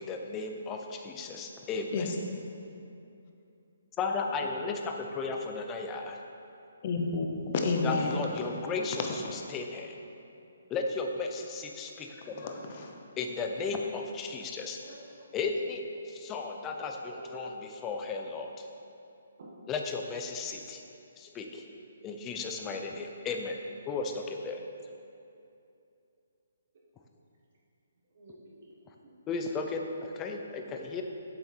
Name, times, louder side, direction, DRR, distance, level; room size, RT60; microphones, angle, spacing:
voice 1, 0.0-2.1 4.0-6.2 7.8-10.0 10.7-12.6 13.2-14.8 15.3-18.7 19.7-20.8 21.2-21.6 22.0-23.6 23.9-24.6 29.3-31.0, left 4 dB, 15° left, 3 dB, 0.5 m, -35 dB
voice 2, 6.8-8.2 9.0-9.1 12.3-13.0, left 3 dB, 35° left, 2 dB, 0.8 m, -30 dB
voice 3, 14.8-15.3 17.0-17.4 19.4-19.6 28.1-29.1 30.2-30.5, right 1 dB, 45° right, -4 dB, 1.4 m, -50 dB
7.7 x 6.9 x 4.4 m, 2.7 s
hypercardioid pair, 170°, 0 cm